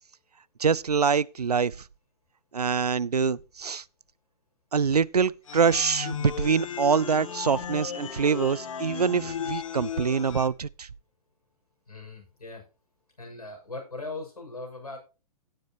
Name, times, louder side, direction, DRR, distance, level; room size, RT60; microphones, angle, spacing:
voice 1, 0.6-1.7 2.5-3.8 4.7-10.9, right 6 dB, 80° right, 0.5 m, -25 dB
sound 1, 5.5-10.5, left 8 dB, 55° left, 1.1 m, -35 dB
voice 2, 11.9-12.6 13.2-15.0, left 2 dB, 75° left, 6.8 m, -39 dB
16.5 x 7.8 x 3.0 m
figure-of-eight pair, 120°, 20 cm